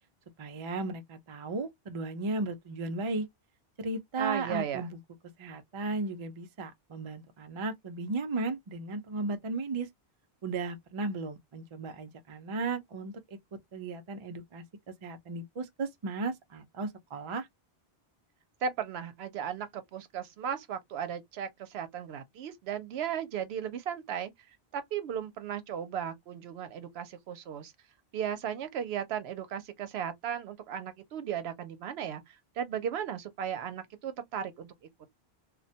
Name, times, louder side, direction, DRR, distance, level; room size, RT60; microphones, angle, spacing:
voice 1, 0.4-3.3 3.8-5.0 5.4-9.9 10.4-13.4 13.7-17.5, right 3 dB, 45° right, 0.4 m, -35 dB
voice 2, 4.2-4.9 18.6-24.3 24.7-27.7 28.1-34.7, right 8 dB, 80° right, 0.8 m, -36 dB
2.3 x 2.2 x 2.6 m
omnidirectional pair, 1.1 m